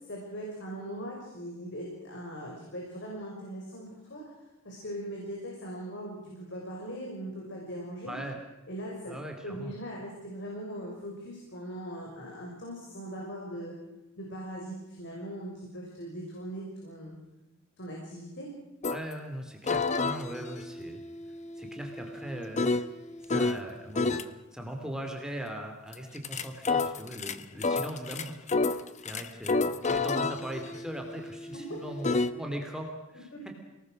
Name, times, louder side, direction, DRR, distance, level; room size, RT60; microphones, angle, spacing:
voice 1, 0.0-4.2 4.6-8.2 8.7-9.1 9.4-13.7 14.2-17.2 17.8-18.5 31.5-31.6 33.3-33.4, equal, 60° left, -2 dB, 6.1 m, -40 dB
voice 2, 8.1-8.4 9.0-9.7 18.9-21.0 21.6-22.7 23.3-33.3, right 1 dB, 5° right, 2 dB, 2.7 m, -40 dB
sound 1, 18.8-19.0 19.7-23.6 24.0-24.3 25.9-32.3, left 3 dB, 35° left, 0.9 m, -30 dB
29.5 x 19.0 x 6.5 m, 1.0 s
head